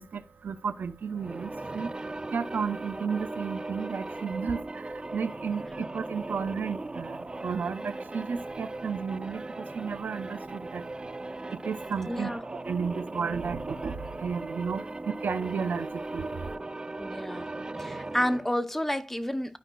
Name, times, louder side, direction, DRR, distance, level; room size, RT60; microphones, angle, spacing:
voice 1, 0.0-1.9 2.3-4.6 5.1-7.2 7.4-9.4 9.7-10.8 11.6-13.9 14.2-14.8 15.2-16.3, right 6 dB, 85° right, 0.6 m, -33 dB
sound 1, 1.1-18.6, right 2 dB, 30° right, 0.5 m, -38 dB
voice 2, 12.1-12.4 17.0-17.5 17.8-19.6, equal, 10° left, 0.7 m, -30 dB
12.5 x 4.8 x 2.3 m
wide cardioid pair, 70°, 3 cm